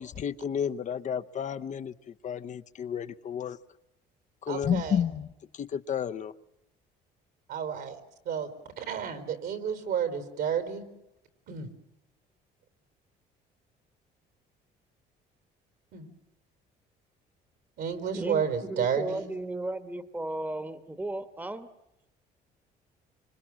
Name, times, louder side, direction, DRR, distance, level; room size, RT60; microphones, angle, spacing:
voice 1, 0.0-3.6 4.4-5.3 5.5-6.3, left 8 dB, 45° left, 10 dB, 0.9 m, -31 dB
voice 2, 4.5-5.0 7.5-8.0 8.2-10.9 11.5-11.7 15.9-16.0 17.8-19.3, right 7 dB, 70° right, 10 dB, 4.3 m, -31 dB
voice 3, 18.1-21.7, right 2 dB, 10° right, 11 dB, 1.3 m, -35 dB
26.0 x 25.5 x 7.5 m, 0.89 s
cardioid pair, 110°, 17 cm